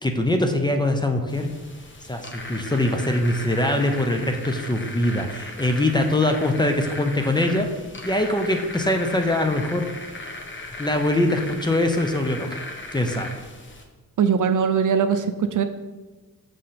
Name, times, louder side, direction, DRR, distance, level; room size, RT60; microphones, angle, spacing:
voice 1, 0.0-1.5 2.0-7.8 8.0-9.9 10.8-12.6 12.9-13.4, left 1 dB, 10° left, 5 dB, 0.7 m, -23 dB
sound 1, 1.3-13.8, left 2 dB, 35° left, 1.0 m, -37 dB
voice 2, 14.2-15.6, right 7 dB, 60° right, 8 dB, 0.6 m, -21 dB
6.4 x 5.9 x 4.2 m, 1.3 s
cardioid pair, 100°, 36 cm